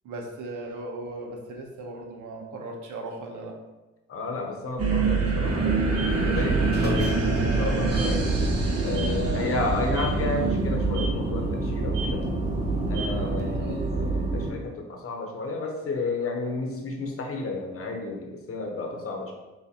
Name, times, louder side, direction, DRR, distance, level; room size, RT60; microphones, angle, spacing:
voice 1, 0.0-3.6 9.3-9.6 13.1-13.5, right 2 dB, 80° right, 2 dB, 0.8 m, -37 dB
voice 2, 4.1-7.1 7.4-8.4 8.8-12.2 12.9-19.3, left 3 dB, 50° left, 1 dB, 0.9 m, -32 dB
sound 1, 4.8-13.6, right 3 dB, 55° right, 1.0 m, -27 dB
sound 2, 5.4-14.5, right 2 dB, 35° right, 0.7 m, -28 dB
6.3 x 2.5 x 2.9 m, 1.1 s
cardioid pair, 90°, 30 cm